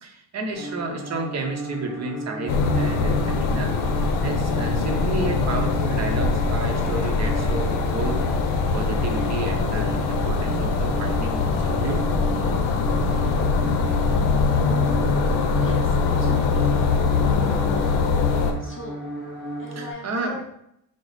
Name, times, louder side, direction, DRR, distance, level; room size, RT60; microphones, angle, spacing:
voice 1, 0.0-3.7 4.2-8.2 8.7-12.1 19.7-20.4, right 3 dB, 35° right, 3 dB, 0.7 m, -31 dB
sound 1, 0.5-19.9, right 1 dB, ahead, 1.1 m, -34 dB
sound 2, 2.5-18.5, left 4 dB, 70° left, 0.7 m, -22 dB
voice 2, 15.6-16.7 18.6-19.0 19.6-20.4, left 1 dB, 25° left, -2 dB, 0.6 m, -40 dB
4.7 x 2.1 x 3.9 m, 0.76 s
cardioid pair, 140°, 46 cm